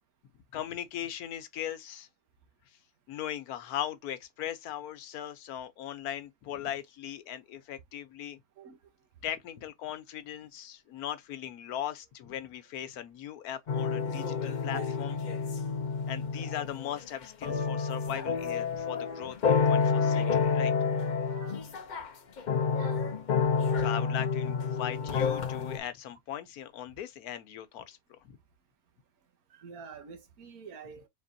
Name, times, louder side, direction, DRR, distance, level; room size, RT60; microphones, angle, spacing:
voice 1, 0.5-2.1 3.1-8.4 9.2-15.2 16.1-20.7 23.8-28.0, left 10 dB, 90° left, 1.2 m, -39 dB
sound 1, 13.7-17.0 17.4-22.1 22.4-25.8, left 5 dB, 55° left, 0.5 m, -29 dB
voice 2, 14.6-15.0 21.3-21.6 22.7-23.0 25.0-25.1 29.5-31.1, right 7 dB, 75° right, 1.4 m, -47 dB
4.3 x 3.3 x 2.6 m
omnidirectional pair, 1.5 m